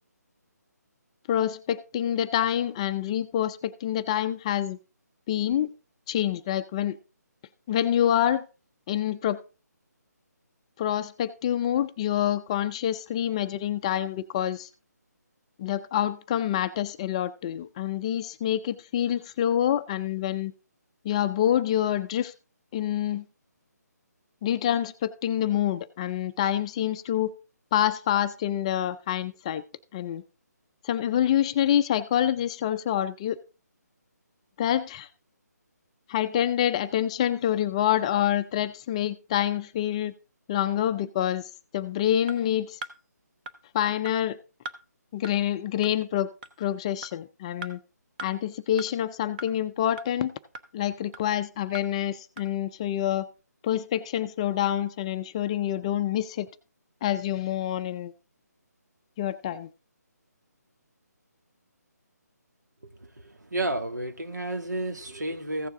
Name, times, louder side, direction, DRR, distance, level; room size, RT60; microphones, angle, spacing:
voice 1, 1.3-4.8 5.3-5.7 6.1-7.0 7.7-8.4 8.9-9.4 10.8-14.7 15.6-20.5 21.0-22.3 22.7-23.3 24.4-27.3 27.7-29.6 29.9-30.2 30.8-33.4 34.6-35.1 36.1-40.1 40.5-41.4 41.7-42.8 43.7-44.4 45.1-46.3 46.6-47.8 48.2-50.3 50.7-53.3 53.6-56.5 57.0-58.1 59.2-59.7, left 11 dB, 20° left, 0.4 m, -27 dB
sound 1, 42.3-42.4 42.8-42.9 43.5-43.6 44.1-44.2 44.7-44.8 45.2-45.3 45.8-45.9 46.4-46.5 47.0-47.1 47.6-47.7 48.2-48.3 48.8-48.9 49.4-49.5 50.0-50.1 50.5-50.7 51.1-51.2 51.7-51.8 52.4-52.5, right 3 dB, 30° right, 1.0 m, -38 dB
voice 2, 62.9-65.7, right 1 dB, 80° right, 2.1 m, -32 dB
15.5 x 7.0 x 3.7 m
figure-of-eight pair, 150°, 9 cm